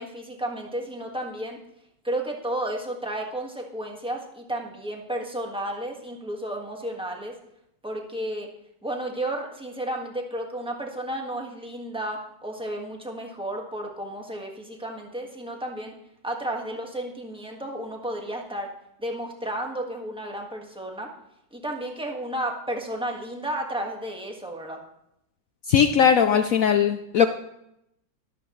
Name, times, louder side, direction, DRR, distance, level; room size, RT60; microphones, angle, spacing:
voice 1, 0.0-1.6 2.0-7.4 7.8-8.5 8.8-15.9 16.2-18.7 19.0-21.1 21.5-24.8 26.3-26.4, right 1 dB, 5° right, 1 dB, 1.3 m, -32 dB
voice 2, 25.7-27.3, left 8 dB, 70° left, 8 dB, 0.8 m, -19 dB
13.0 x 12.5 x 3.1 m, 0.80 s
omnidirectional pair, 2.0 m